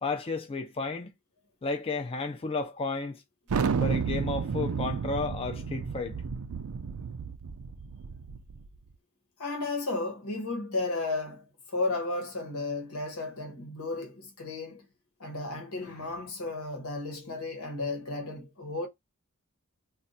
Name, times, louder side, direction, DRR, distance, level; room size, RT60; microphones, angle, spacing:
voice 1, 0.0-1.1 1.6-3.2 3.8-6.2, left 3 dB, 25° left, 0.4 m, -32 dB
Thunder, 3.5-8.7, right 5 dB, 80° right, 0.5 m, -31 dB
voice 2, 9.4-14.8 15.2-18.9, left 2 dB, 85° left, 1.1 m, -34 dB
2.5 x 2.3 x 4.0 m
head